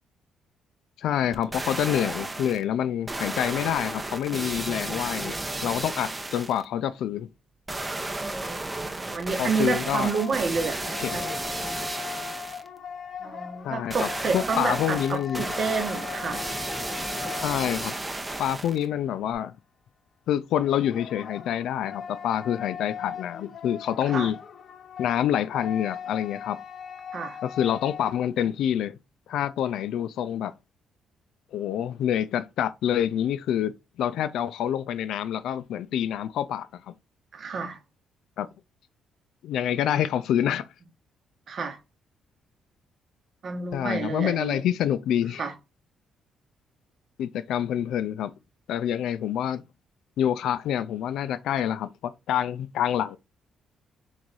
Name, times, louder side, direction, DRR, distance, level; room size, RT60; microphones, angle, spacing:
voice 1, 1.0-7.3 9.4-10.1 11.0-11.2 13.6-14.1 14.3-15.4 17.4-17.9 18.4-19.5 20.3-24.4 25.0-26.6 27.4-29.0 29.3-30.5 31.5-33.7 34.0-36.7 38.4-38.5 39.4-40.7 43.7-45.4 47.2-48.3 48.7-49.6 50.2-53.2, left 10 dB, 80° left, 0.3 m, -27 dB
sound 1, 1.3-2.6 3.1-6.6 7.7-12.7 13.9-18.9 19.3-19.4, right 2 dB, 20° right, 0.6 m, -33 dB
voice 2, 8.9-10.8 11.1-11.3 13.2-16.5 24.1-24.3 27.1-27.4 37.3-37.8 41.5-41.8 43.4-44.6 45.4-45.5, right 5 dB, 50° right, 1.0 m, -29 dB
sound 2, 9.8-18.3 20.6-28.3, left 7 dB, 55° left, 0.7 m, -39 dB
3.4 x 3.2 x 4.0 m
cardioid pair, 90°, 0 cm